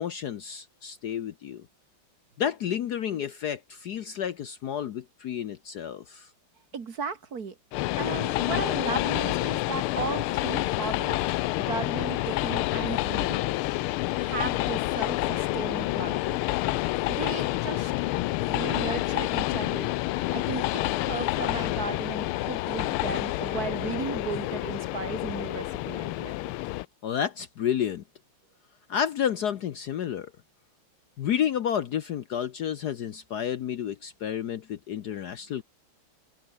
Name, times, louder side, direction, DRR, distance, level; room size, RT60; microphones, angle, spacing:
voice 1, 0.0-1.7 2.4-6.3 27.0-28.0 28.9-30.3 31.2-35.6, left 9 dB, 60° left, 1.2 m, -30 dB
voice 2, 6.7-7.6 8.0-11.2 11.6-13.5 14.1-16.4 17.1-17.9 18.5-19.9 20.3-26.5, right 5 dB, 45° right, 2.1 m, -35 dB
Train, 7.7-26.9, left 18 dB, 90° left, 1.5 m, -28 dB
omnidirectional pair, 2.3 m